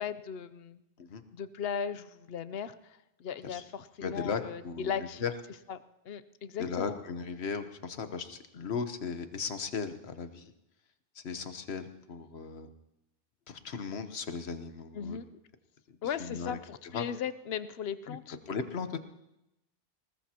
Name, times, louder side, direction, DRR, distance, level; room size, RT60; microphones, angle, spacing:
voice 1, 0.0-0.8 1.3-5.2 5.7-5.8 6.0-7.0 14.9-15.3 16.0-18.4, left 7 dB, 75° left, 12 dB, 0.9 m, -37 dB
voice 2, 4.0-5.3 6.6-10.5 11.1-12.7 13.5-15.2 16.2-16.6 16.9-17.0 18.1-18.2 18.5-19.0, left 5 dB, 90° left, 9 dB, 1.3 m, -37 dB
20.0 x 19.5 x 2.9 m, 0.89 s
omnidirectional pair, 1.0 m